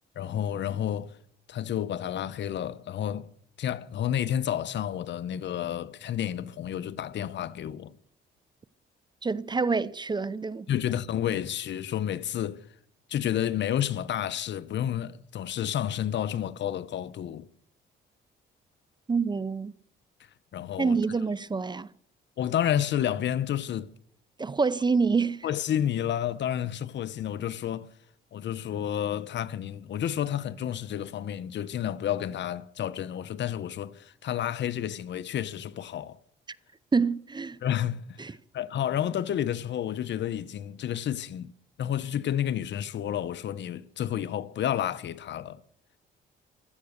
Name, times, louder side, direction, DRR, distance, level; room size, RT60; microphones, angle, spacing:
voice 1, 0.2-1.2 1.5-3.3 3.6-7.9 10.7-12.6 13.1-17.5 20.5-21.0 22.4-23.9 25.4-27.9 28.3-36.2 37.6-41.5 41.8-45.6, left 10 dB, 65° left, 1.0 m, -30 dB
voice 2, 9.2-10.7 19.1-19.7 20.8-21.9 24.4-25.5 36.9-37.6 38.2-38.3, right 4 dB, 20° right, 0.6 m, -27 dB
16.0 x 13.5 x 6.6 m
cardioid pair, 90°, 20 cm